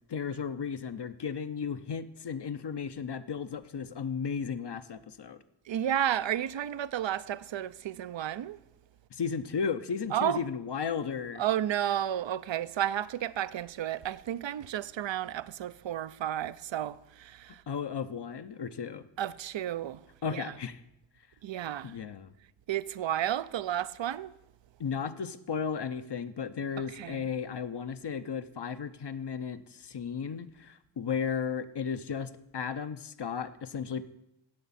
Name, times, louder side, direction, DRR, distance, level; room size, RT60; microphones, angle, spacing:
voice 1, 0.1-5.4 9.1-11.4 17.7-19.0 20.2-20.8 21.8-22.3 24.8-34.1, left 6 dB, 55° left, 0.7 m, -34 dB
voice 2, 5.7-8.6 10.1-10.4 11.3-17.6 19.2-20.0 20.3-20.6 21.4-21.9 22.7-24.3 26.8-27.3, right 11 dB, 65° right, 0.5 m, -32 dB
16.5 x 6.9 x 4.2 m
cardioid pair, 40°, 48 cm